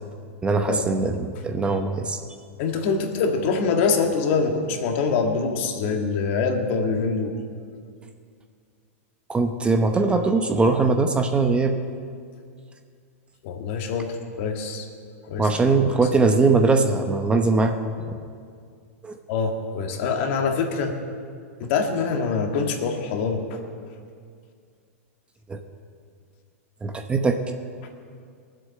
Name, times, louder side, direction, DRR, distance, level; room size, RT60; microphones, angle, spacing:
voice 1, 0.4-2.2 9.3-11.8 15.4-18.2 19.0-19.1 25.5-25.6 26.8-27.3, right 3 dB, 15° right, 6 dB, 0.8 m, -21 dB
voice 2, 2.6-7.4 13.4-14.9 15.3-15.5 16.0-16.1 19.3-21.0 21.6-23.6 27.8-27.9, left 4 dB, 55° left, 3 dB, 1.9 m, -24 dB
20.0 x 7.7 x 6.5 m, 2.2 s
hypercardioid pair, 125°, 8 cm